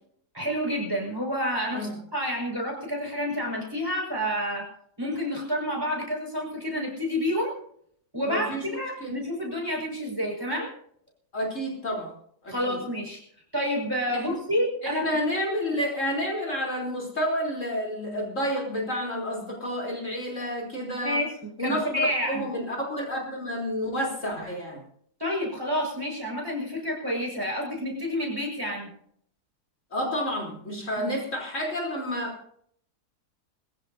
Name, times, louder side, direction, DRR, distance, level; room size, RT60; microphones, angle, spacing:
voice 1, 0.3-4.7 5.0-7.5 8.1-10.7 12.5-13.2 13.5-15.1 21.0-21.3 21.6-22.5 25.2-28.9, equal, 15° right, -1 dB, 5.5 m, -29 dB
voice 2, 8.2-8.7 9.0-9.2 11.3-12.1 12.4-12.8 14.1-14.4 14.8-21.2 21.6-24.8 29.9-32.6, equal, 50° left, -2 dB, 4.1 m, -30 dB
23.5 x 15.5 x 2.7 m, 0.65 s
omnidirectional pair, 1.7 m